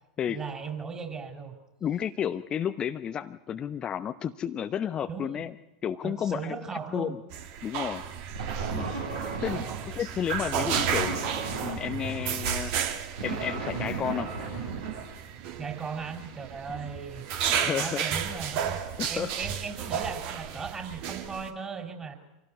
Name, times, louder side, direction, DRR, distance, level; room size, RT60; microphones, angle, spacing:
voice 1, 0.3-1.5 5.0-5.4 6.0-7.2 9.5-9.8 15.6-17.3 17.6-18.8 19.1-22.1, right 5 dB, 20° right, 6 dB, 4.5 m, -37 dB
voice 2, 1.8-5.5 5.8-6.6 6.9-7.2 7.6-8.0 8.7-8.9 9.4-11.2 11.6-12.7 13.2-14.3 17.5-18.1 19.0-19.3, left 9 dB, 30° left, 9 dB, 0.8 m, -32 dB
sound 1, 7.3-21.5, right 8 dB, 50° right, 2.1 m, -33 dB
sound 2, 8.3-10.0 10.6-15.7, right 5 dB, 75° right, 7.3 m, -35 dB
26.0 x 17.5 x 9.7 m, 0.96 s
figure-of-eight pair, 85°, 3 cm